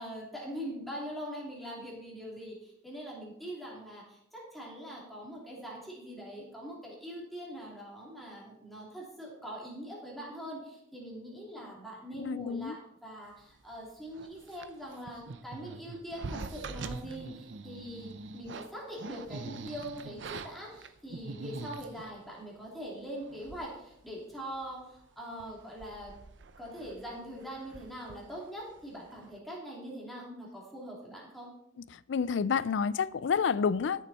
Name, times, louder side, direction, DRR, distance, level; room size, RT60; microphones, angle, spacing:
voice 1, 0.0-26.1 26.6-31.5, equal, ahead, 2.9 m, -43 dB
voice 2, 12.2-12.8 31.9-34.1, left 6 dB, 65° left, 0.4 m, -29 dB
sound 1, 14.1-22.2 22.9-23.0 23.2-23.8 24.1-24.2 24.6-25.0 25.3-28.9 29.1-29.4, right 3 dB, 70° right, 0.6 m, -44 dB
13.0 x 7.2 x 4.1 m
head